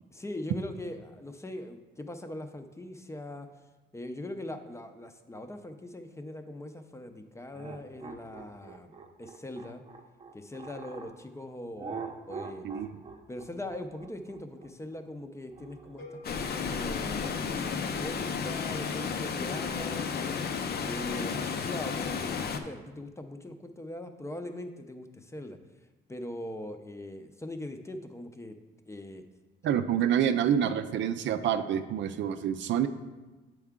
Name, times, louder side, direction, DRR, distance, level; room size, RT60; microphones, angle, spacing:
voice 1, 0.1-3.5 3.9-9.8 10.3-12.7 13.3-20.1 20.8-25.1 25.3-25.6 26.1-28.6 28.9-29.2 30.0-30.1, left 1 dB, 15° left, 7 dB, 0.6 m, -41 dB
sound 1, 7.5-11.1 11.8-16.3, right 5 dB, 30° right, 0.7 m, -44 dB
sound 2, 16.0-18.0, left 1 dB, 85° left, 1.7 m, -51 dB
Water, 16.2-22.6, left 6 dB, 55° left, 0.6 m, -32 dB
voice 2, 29.6-32.9, right 9 dB, 70° right, 10 dB, 0.5 m, -27 dB
7.8 x 4.6 x 3.6 m, 1.2 s
cardioid pair, 90°, 20 cm